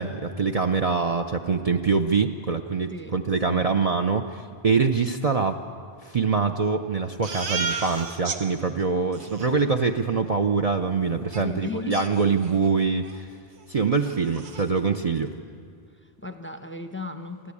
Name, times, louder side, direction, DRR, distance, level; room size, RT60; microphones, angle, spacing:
voice 1, 0.0-5.6 6.0-13.3 13.7-15.3, right 5 dB, 40° right, 7 dB, 0.7 m, -24 dB
voice 2, 3.5-3.8 11.4-12.1 15.9-17.5, left 4 dB, 10° left, 8 dB, 0.8 m, -36 dB
Crying sobbing, 7.2-8.4 8.8-8.9 9.1-9.5 11.3-11.4 11.9-12.7 13.0-13.2 13.6-13.7 14.0-14.7, right 4 dB, 85° right, 1.5 m, -33 dB
28.5 x 11.5 x 8.5 m, 2.1 s
omnidirectional pair, 1.1 m